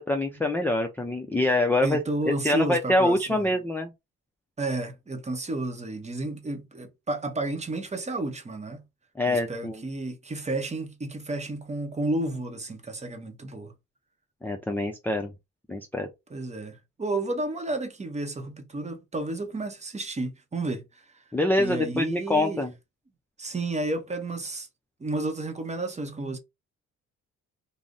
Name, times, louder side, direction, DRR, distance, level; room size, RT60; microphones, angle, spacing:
voice 1, 0.0-2.0 2.4-3.9 9.2-9.8 14.4-15.3 15.7-16.1 21.3-22.7, left 1 dB, 5° left, 0.3 m, -25 dB
voice 2, 1.8-3.5 4.6-8.8 9.3-13.7 16.3-21.2 21.6-22.6 23.4-24.7 25.0-26.4, right 2 dB, 20° right, 0.8 m, -32 dB
2.5 x 2.0 x 3.5 m
cardioid pair, 90°, 30 cm